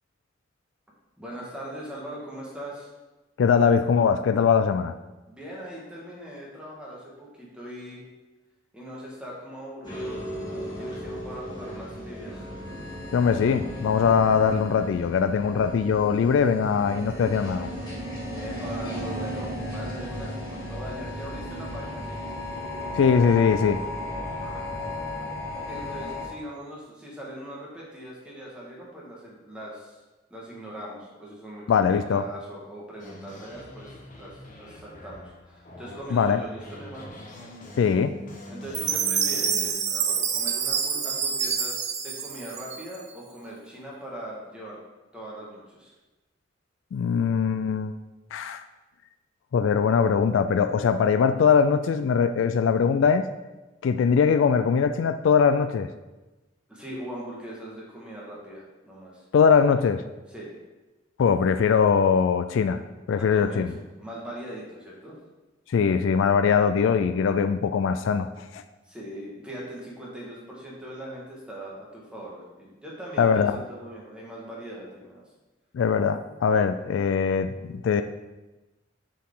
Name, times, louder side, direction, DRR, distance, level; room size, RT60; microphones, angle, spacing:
voice 1, 1.2-2.9 5.3-8.0 8.7-12.4 18.4-22.2 25.5-30.0 30.3-31.6 31.9-37.1 38.5-44.8 45.1-45.9 56.7-59.2 60.3-60.5 63.2-65.1 68.9-75.2, equal, 5° right, -5 dB, 1.6 m, -40 dB
voice 2, 3.4-4.9 13.1-17.7 22.9-23.8 31.7-32.2 36.1-36.4 37.8-38.1 46.9-47.9 48.3-48.6 49.5-53.2 53.8-55.9 59.3-60.0 61.2-62.8 63.1-63.7 65.7-68.6 73.2-73.6 75.7-78.0, left 6 dB, 85° left, 10 dB, 0.3 m, -21 dB
sound 1, 9.8-26.3, left 1 dB, 20° left, 2.0 m, -35 dB
sound 2, 33.0-39.7, left 1 dB, 45° left, 1.2 m, -43 dB
Chime, 38.7-43.1, right 7 dB, 40° right, 0.6 m, -27 dB
7.2 x 4.7 x 3.7 m, 1.1 s
head